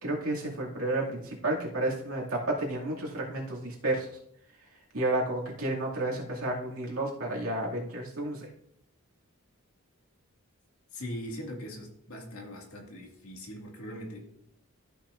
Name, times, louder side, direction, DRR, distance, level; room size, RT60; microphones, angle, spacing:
voice 1, 0.0-4.1 4.9-8.5, right 2 dB, 85° right, -3 dB, 2.3 m, -31 dB
voice 2, 10.9-14.2, equal, 85° left, 0 dB, 2.0 m, -41 dB
13.5 x 5.8 x 2.5 m, 0.71 s
head